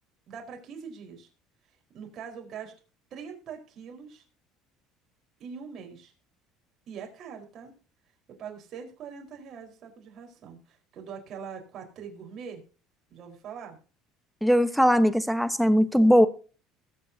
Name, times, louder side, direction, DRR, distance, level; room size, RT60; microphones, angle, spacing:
voice 1, 0.3-1.3 1.9-2.7 3.1-4.2 5.4-6.1 6.9-7.7 8.4-12.6 13.1-13.8, right 6 dB, 40° right, 1 dB, 4.3 m, -42 dB
voice 2, 14.4-16.3, equal, ahead, 12 dB, 1.0 m, -20 dB
21.5 x 7.2 x 2.8 m, 0.37 s
cardioid pair, 150°, 0 cm